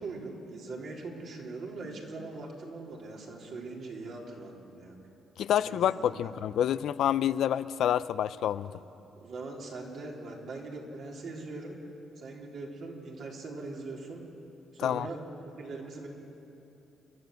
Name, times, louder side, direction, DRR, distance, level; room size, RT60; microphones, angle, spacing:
voice 1, 0.0-5.0 5.5-6.3 8.7-11.8 12.2-14.3 14.7-15.2 15.4-16.1, right 3 dB, 65° right, -2 dB, 4.0 m, -41 dB
voice 2, 5.4-8.7 14.8-15.1, left 10 dB, 75° left, 15 dB, 0.5 m, -28 dB
29.0 x 12.0 x 7.9 m, 2.9 s
cardioid pair, 90°, 0 cm